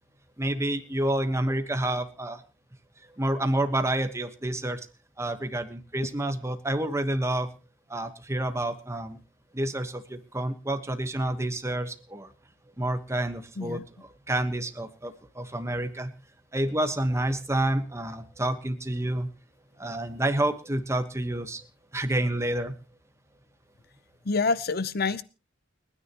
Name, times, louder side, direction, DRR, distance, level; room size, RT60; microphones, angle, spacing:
voice 1, 0.4-2.4 3.1-4.8 5.2-7.5 7.9-9.2 9.5-12.3 12.8-13.8 14.3-16.1 16.5-19.3 19.8-21.6 21.9-22.7, right 1 dB, 15° right, 9 dB, 1.3 m, -29 dB
voice 2, 24.2-25.2, left 4 dB, 55° left, 16 dB, 0.8 m, -27 dB
29.5 x 9.9 x 3.0 m, 0.31 s
head